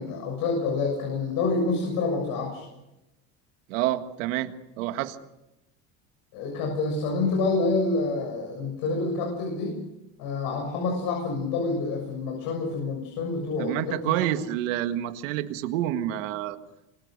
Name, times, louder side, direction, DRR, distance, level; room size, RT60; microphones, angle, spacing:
voice 1, 0.0-2.7 6.3-9.7 10.2-14.2, left 3 dB, 60° left, 1 dB, 7.0 m, -27 dB
voice 2, 3.7-5.2 13.6-16.6, right 13 dB, 85° right, 9 dB, 1.8 m, -28 dB
28.0 x 24.0 x 6.7 m, 0.94 s
cardioid pair, 140°, 38 cm